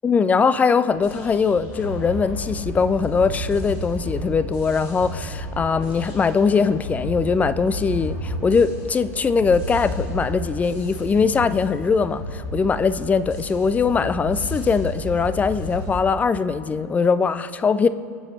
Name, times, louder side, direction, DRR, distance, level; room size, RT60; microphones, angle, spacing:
voice 1, 0.0-17.9, left 5 dB, 15° left, 0.4 m, -21 dB
sound 1, 0.9-16.0, equal, 45° left, 2.6 m, -32 dB
21.5 x 7.6 x 3.3 m
figure-of-eight pair, 85°, 10 cm